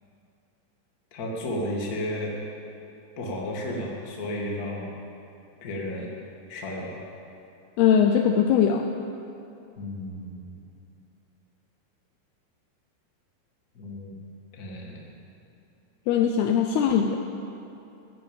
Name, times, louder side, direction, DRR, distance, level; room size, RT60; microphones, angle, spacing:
voice 1, 1.1-2.3 3.2-4.9 5.6-6.1 6.5-6.9 9.8-10.6 13.7-14.2 14.5-15.1, left 1 dB, 40° left, -2 dB, 1.2 m, -33 dB
voice 2, 7.8-8.8 16.1-17.2, left 8 dB, 80° left, 4 dB, 2.4 m, -20 dB
15.5 x 11.0 x 7.2 m, 2.8 s
omnidirectional pair, 5.2 m